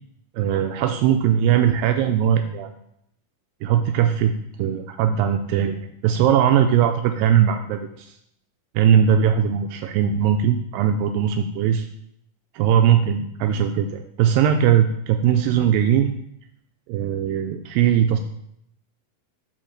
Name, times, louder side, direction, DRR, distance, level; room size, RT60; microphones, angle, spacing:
voice 1, 0.3-2.8 3.6-4.3 4.6-8.2 8.8-11.9 12.5-16.2 16.9-18.2, right 9 dB, 85° right, 6 dB, 2.2 m, -20 dB
8.5 x 3.7 x 6.5 m, 0.74 s
omnidirectional pair, 4.1 m